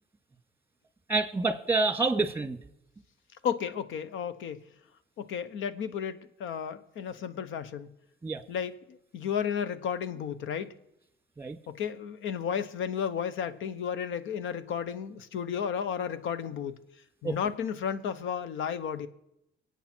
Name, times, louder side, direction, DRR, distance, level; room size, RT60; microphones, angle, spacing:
voice 1, 1.1-2.6 8.2-8.4 11.4-11.6 17.2-17.4, right 3 dB, 10° right, 2.1 m, -27 dB
voice 2, 3.4-4.6 5.2-7.9 8.5-10.7 11.7-16.8 17.2-19.1, left 7 dB, 80° left, 1.0 m, -33 dB
25.0 x 8.8 x 4.5 m
cardioid pair, 90°, 20 cm